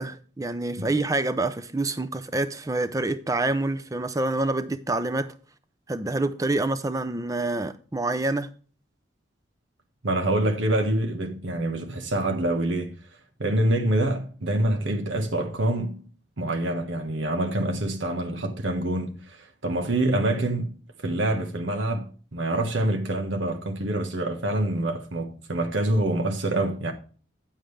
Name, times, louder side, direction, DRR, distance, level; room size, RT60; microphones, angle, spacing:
voice 1, 0.0-5.3 5.9-8.5, right 2 dB, 15° right, 0.5 m, -27 dB
voice 2, 10.0-13.0 13.4-16.1 16.4-20.8 21.0-26.9, right 1 dB, 80° right, 1.3 m, -26 dB
8.9 x 7.5 x 3.3 m
head